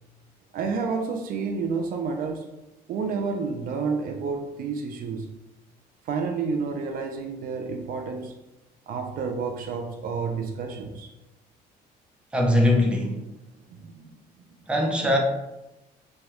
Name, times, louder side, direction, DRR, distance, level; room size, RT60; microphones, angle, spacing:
voice 1, 0.5-2.5 2.9-5.3 6.1-8.3 8.9-11.1 13.7-14.0, right 5 dB, 60° right, 4 dB, 0.4 m, -30 dB
voice 2, 12.3-13.2 14.7-15.2, left 1 dB, 5° right, 0 dB, 0.5 m, -21 dB
3.2 x 2.2 x 2.9 m, 0.97 s
cardioid pair, 110°, 17 cm